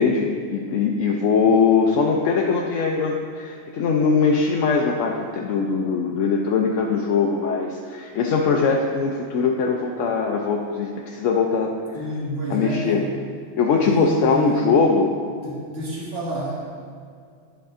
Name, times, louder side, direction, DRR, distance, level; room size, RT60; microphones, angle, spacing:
voice 1, 0.0-11.7 12.5-13.0 13.6-15.1, left 5 dB, 85° left, 0 dB, 1.0 m, -21 dB
voice 2, 11.9-13.0 13.8-14.8 15.4-16.7, right 1 dB, 55° right, -5 dB, 1.8 m, -29 dB
10.5 x 5.1 x 3.7 m, 2.2 s
omnidirectional pair, 1.3 m